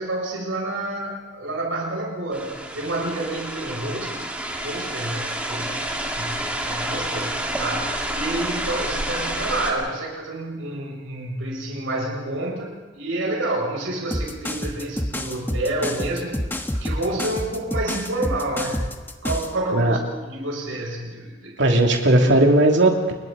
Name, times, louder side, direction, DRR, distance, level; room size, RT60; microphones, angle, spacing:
voice 1, 0.0-4.3 4.6-5.9 6.2-18.9 19.2-21.6 22.2-22.5, right 2 dB, 90° right, -2 dB, 7.2 m, -29 dB
sound 1, 2.3-9.7, right 1 dB, 5° right, 2.5 m, -29 dB
sound 2, 14.1-19.6, left 1 dB, 10° left, 1.1 m, -28 dB
voice 2, 21.6-23.1, right 1 dB, 65° right, 2 dB, 2.8 m, -17 dB
29.0 x 22.0 x 4.1 m, 1.3 s
head